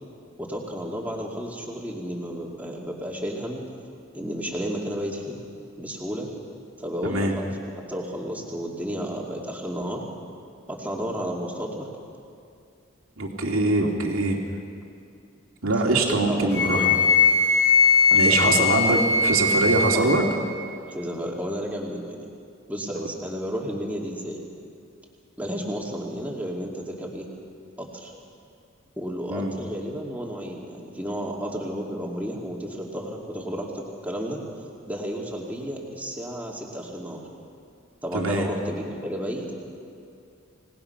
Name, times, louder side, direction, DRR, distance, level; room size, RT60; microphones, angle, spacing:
voice 1, 0.4-3.6 4.1-5.4 5.8-6.3 6.8-7.6 7.9-10.1 10.7-11.9 16.1-16.9 18.1-19.0 19.9-20.2 20.9-22.3 22.7-24.4 25.4-27.3 27.8-28.1 29.0-34.4 34.9-37.2 38.0-39.5, equal, 10° right, -2 dB, 2.5 m, -32 dB
voice 2, 7.0-7.3 13.2-14.4 15.6-17.0 18.1-20.2 29.3-29.5 38.1-38.5, right 2 dB, 90° right, 1 dB, 2.6 m, -23 dB
Wind instrument woodwind instrument, 16.5-20.2, left 4 dB, 15° left, 2.1 m, -20 dB
26.0 x 18.5 x 5.9 m, 2.4 s
head